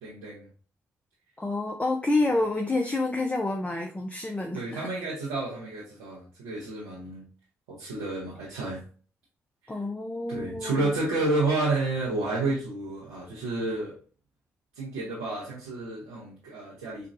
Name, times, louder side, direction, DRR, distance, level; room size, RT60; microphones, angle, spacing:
voice 1, 0.0-0.5 4.5-7.3 7.7-8.8 10.3-13.9 14.7-17.1, right 2 dB, 90° right, -8 dB, 0.9 m, -30 dB
voice 2, 1.4-4.9 9.7-10.9, left 2 dB, 20° left, 3 dB, 0.6 m, -28 dB
4.4 x 2.4 x 2.6 m, 0.39 s
hypercardioid pair, 45°, 7 cm